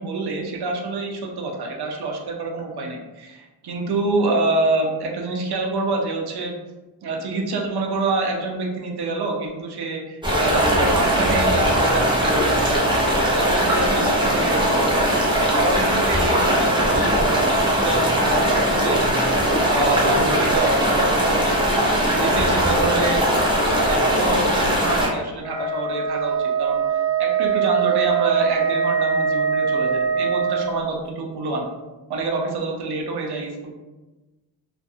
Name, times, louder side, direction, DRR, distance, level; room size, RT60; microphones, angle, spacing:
voice 1, 0.0-6.5 7.0-13.1 13.4-14.8 15.5-19.0 19.6-21.6 22.0-26.8 27.2-31.7 32.1-33.7, right 2 dB, 60° right, 1 dB, 0.6 m, -26 dB
sound 1, 10.2-25.1, equal, 10° right, 0.5 m, -20 dB
Wind instrument woodwind instrument, 25.4-30.7, right 7 dB, 45° left, 1.0 m, -22 dB
2.5 x 2.4 x 2.6 m, 1.1 s
wide cardioid pair, 120°, 44 cm